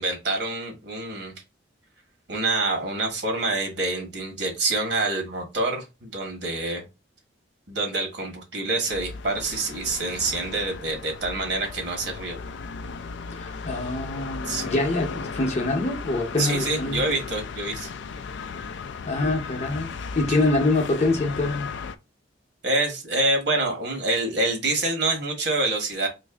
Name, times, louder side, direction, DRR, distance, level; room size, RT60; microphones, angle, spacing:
voice 1, 0.0-1.3 2.3-6.8 7.7-12.4 14.4-14.7 16.4-17.9 22.6-26.1, right 2 dB, 60° right, 1.2 m, -26 dB
sound 1, 8.9-22.0, left 5 dB, 70° left, 0.4 m, -36 dB
voice 2, 13.3-17.1 19.0-21.7, left 2 dB, 35° left, 0.7 m, -25 dB
3.1 x 2.6 x 3.4 m
head